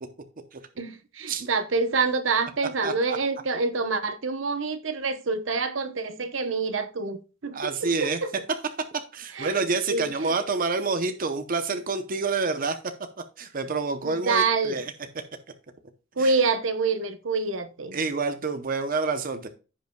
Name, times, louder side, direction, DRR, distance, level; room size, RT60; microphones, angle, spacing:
voice 1, 0.8-8.3 9.3-9.5 9.9-10.3 14.0-14.8 16.2-18.0, right 4 dB, 75° right, 0.9 m, -27 dB
voice 2, 2.8-3.2 7.5-8.4 9.1-12.8 13.4-15.2 16.2-16.3 17.9-19.5, right 4 dB, 45° right, 0.8 m, -28 dB
15.5 x 5.3 x 2.3 m
head